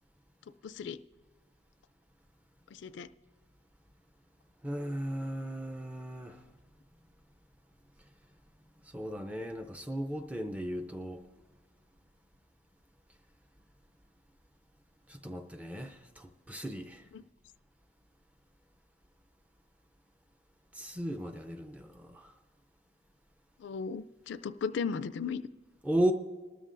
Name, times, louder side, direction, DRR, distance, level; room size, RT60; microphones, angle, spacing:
voice 1, 0.6-1.0 2.7-3.1 23.6-25.4, left 6 dB, 65° left, 0.3 m, -36 dB
voice 2, 4.6-6.4 8.9-11.2 15.1-17.0 20.7-22.3 25.8-26.1, right 1 dB, 5° right, 0.4 m, -35 dB
26.5 x 13.0 x 2.5 m
head